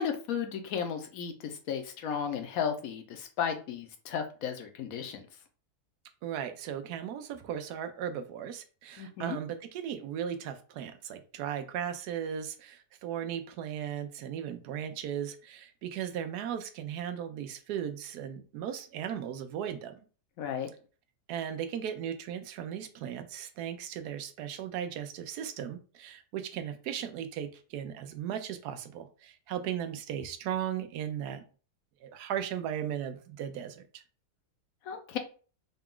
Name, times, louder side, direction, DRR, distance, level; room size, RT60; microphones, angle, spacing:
voice 1, 0.0-5.2 9.0-9.4 20.4-20.7 34.9-35.2, left 7 dB, 70° left, 6 dB, 1.0 m, -34 dB
voice 2, 6.2-20.0 21.3-31.4 32.0-34.0, right 9 dB, 80° right, 8 dB, 1.1 m, -37 dB
3.9 x 2.3 x 3.6 m, 0.38 s
omnidirectional pair, 1.7 m